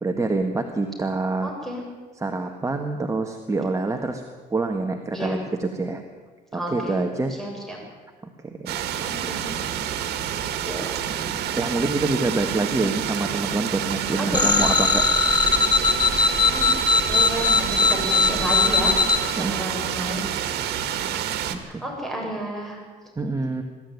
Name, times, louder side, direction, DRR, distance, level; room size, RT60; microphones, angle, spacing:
voice 1, 0.0-1.5 2.2-4.2 4.5-6.0 6.5-7.3 8.2-8.8 11.2-15.0 19.4-19.6 21.5-21.8 23.2-23.6, right 3 dB, 20° right, 4 dB, 1.5 m, -26 dB
voice 2, 1.4-1.8 5.1-5.4 6.5-7.0 7.3-7.8 9.0-9.5 10.5-11.0 14.2-14.6 16.4-16.7 17.0-19.0 19.3-20.3 21.5-22.8, right 1 dB, ahead, -1 dB, 7.3 m, -31 dB
sound 1, 8.7-21.6, right 10 dB, 75° right, 1.9 m, -28 dB
sound 2, 14.3-19.2, left 4 dB, 25° left, 2.0 m, -19 dB
22.0 x 13.0 x 9.4 m, 1.4 s
cardioid pair, 110°, 17 cm